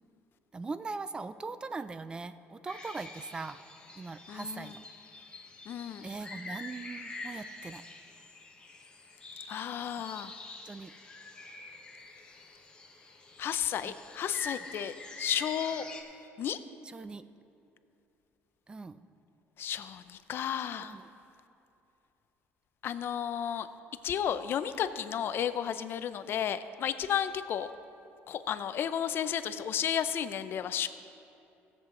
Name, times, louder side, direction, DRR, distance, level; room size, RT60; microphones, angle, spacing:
voice 1, 0.5-3.6 4.0-4.9 6.0-7.8 10.6-10.9 13.8-13.9 16.8-17.2 18.7-19.0 20.8-21.0, right 4 dB, 20° right, 13 dB, 0.3 m, -40 dB
sound 1, 2.7-16.0, left 3 dB, 20° left, 1.1 m, -46 dB
voice 2, 4.3-4.7 5.7-6.1 9.5-10.3 13.4-15.9 16.4-16.6 19.6-21.0 22.8-23.7 24.0-27.7 28.3-30.9, left 9 dB, 50° left, 12 dB, 0.5 m, -33 dB
16.5 x 7.6 x 3.7 m, 2.7 s
cardioid pair, 135°, 5 cm